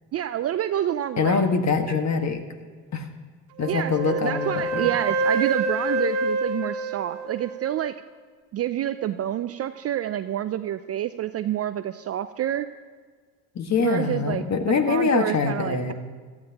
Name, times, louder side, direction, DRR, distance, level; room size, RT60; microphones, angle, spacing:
voice 1, 0.1-1.4 1.9-2.0 3.7-8.0 8.5-12.7 13.8-14.4 14.9-15.9, right 11 dB, 35° right, 10 dB, 0.4 m, -28 dB
voice 2, 1.2-2.4 2.9-3.1 3.6-4.9 13.5-15.9, left 5 dB, 35° left, 5 dB, 1.7 m, -24 dB
Wind instrument woodwind instrument, 3.6-7.8, right 2 dB, 65° right, 1.8 m, -27 dB
17.5 x 13.5 x 2.9 m, 1.5 s
hypercardioid pair, 80°, 46 cm